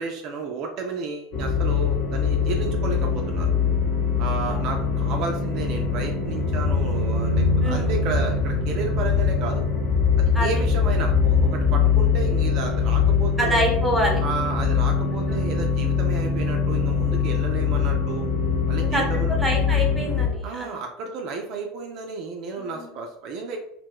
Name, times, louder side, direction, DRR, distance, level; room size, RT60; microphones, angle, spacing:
voice 1, 0.0-3.5 4.2-9.6 10.2-13.6 14.2-18.3 18.7-19.4 20.4-23.6, right 4 dB, 45° right, 3 dB, 0.3 m, -32 dB
sound 1, 1.3-20.3, left 5 dB, 50° left, 0.7 m, -22 dB
voice 2, 7.6-7.9 10.3-10.5 13.4-14.2 18.8-19.0 19.4-20.8 22.6-22.9, equal, ahead, -1 dB, 0.7 m, -26 dB
2.2 x 2.1 x 3.4 m, 0.78 s
figure-of-eight pair, 75°, 0 cm